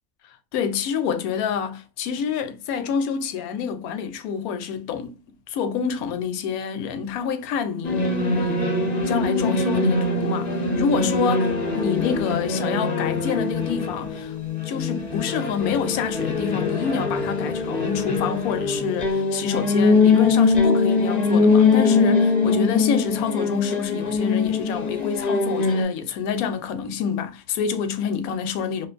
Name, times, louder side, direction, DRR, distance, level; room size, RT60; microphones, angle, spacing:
voice 1, 0.5-5.2 5.5-8.7 9.1-14.3 14.6-28.9, left 7 dB, 85° left, 1.0 m, -27 dB
sound 1, 7.8-25.8, left 4 dB, 45° left, 0.5 m, -22 dB
2.8 x 2.5 x 2.4 m
omnidirectional pair, 1.5 m